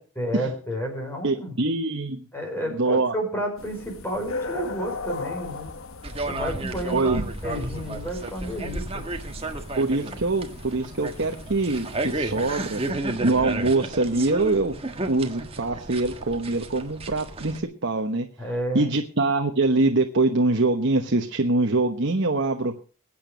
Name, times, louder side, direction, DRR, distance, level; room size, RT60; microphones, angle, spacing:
voice 1, 0.2-1.6 2.3-5.7 6.2-7.0 7.4-9.1 18.4-18.9, equal, 10° left, 2 dB, 5.1 m, -31 dB
voice 2, 1.2-2.3 2.7-3.1 6.9-7.3 9.8-12.8 13.2-14.7 15.1-18.3 18.7-22.8, right 2 dB, 55° right, 5 dB, 1.1 m, -24 dB
sound 1, 3.6-12.9, left 4 dB, 65° left, 1.1 m, -39 dB
sound 2, 6.0-17.6, right 2 dB, 25° right, 1.5 m, -32 dB
22.0 x 8.9 x 5.2 m, 0.39 s
head